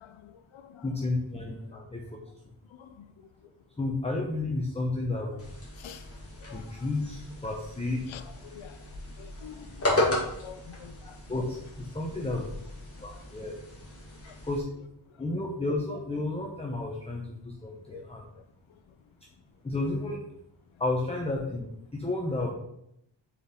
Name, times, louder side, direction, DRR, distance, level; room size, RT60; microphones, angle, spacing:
voice 1, 0.0-1.1 1.6-1.8 2.7-3.5 5.3-5.4 5.8-6.1 6.4-6.9 8.1-11.2 12.1-12.5 12.9-13.4 14.1-14.5 15.1-15.2 17.9-18.9, left 8 dB, 85° left, 0.6 m, -49 dB
voice 2, 0.8-2.0 3.8-5.5 6.5-8.0 11.3-12.5 13.0-13.5 14.4-14.6 15.2-18.2 19.6-20.2 20.8-22.5, left 2 dB, 15° left, 0.9 m, -32 dB
sound 1, 5.4-14.6, left 1 dB, 30° left, 2.0 m, -35 dB
6.6 x 4.6 x 3.8 m
wide cardioid pair, 100°, 46 cm